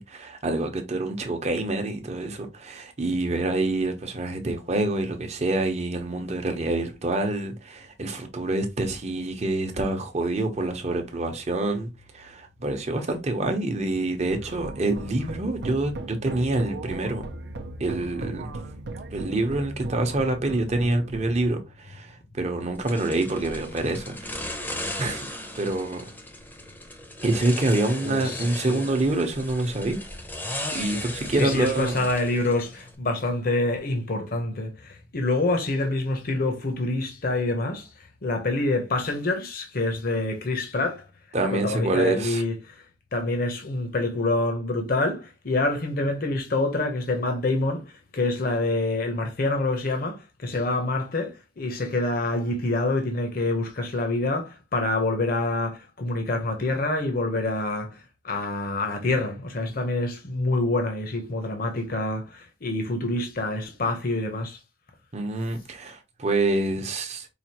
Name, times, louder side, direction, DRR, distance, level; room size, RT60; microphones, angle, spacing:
voice 1, 0.0-11.9 12.1-17.2 17.8-18.5 19.1-25.3 25.5-26.1 27.2-30.0 30.4-32.0 41.3-42.4 65.1-67.3, right 2 dB, 40° right, 0.8 m, -27 dB
sound 1, 14.3-21.5, right 2 dB, 65° right, 0.6 m, -37 dB
sound 2, 22.9-33.0, left 1 dB, 10° left, 0.7 m, -37 dB
voice 2, 28.0-28.8 31.3-41.0 41.4-42.8 43.1-64.6, left 2 dB, 55° left, 0.8 m, -26 dB
4.9 x 2.5 x 2.9 m
head